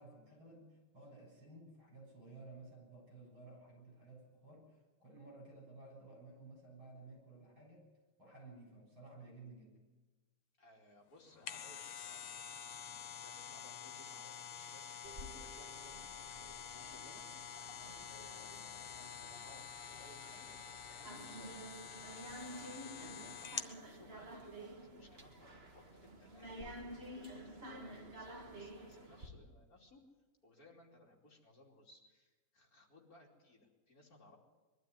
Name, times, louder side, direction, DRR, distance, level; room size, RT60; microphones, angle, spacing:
voice 1, 0.0-7.8 8.2-9.8, right 2 dB, 65° right, 0 dB, 8.1 m, -55 dB
voice 2, 10.6-17.8 18.1-26.6 27.1-30.0 30.4-34.4, left 1 dB, 40° left, 0 dB, 3.4 m, -62 dB
sound 1, 11.2-23.8 24.2-24.3, left 8 dB, 85° left, 2.0 m, -48 dB
sound 2, 15.0-29.3, right 1 dB, 30° right, 2.0 m, -51 dB
22.0 x 12.5 x 9.7 m, 1.2 s
omnidirectional pair, 2.4 m